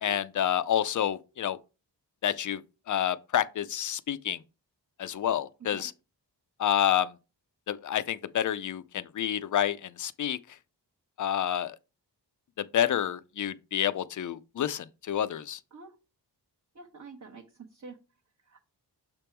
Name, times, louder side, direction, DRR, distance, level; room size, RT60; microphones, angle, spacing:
voice 1, 0.0-1.6 2.2-2.6 2.9-4.4 5.0-5.9 6.6-7.1 7.7-10.4 11.2-11.8 12.6-15.6, left 10 dB, 45° left, 0.4 m, -29 dB
voice 2, 16.7-17.4 17.7-18.0 18.4-18.7, right 4 dB, 40° right, 1.0 m, -47 dB
6.7 x 3.5 x 4.4 m
wide cardioid pair, 125°, 42 cm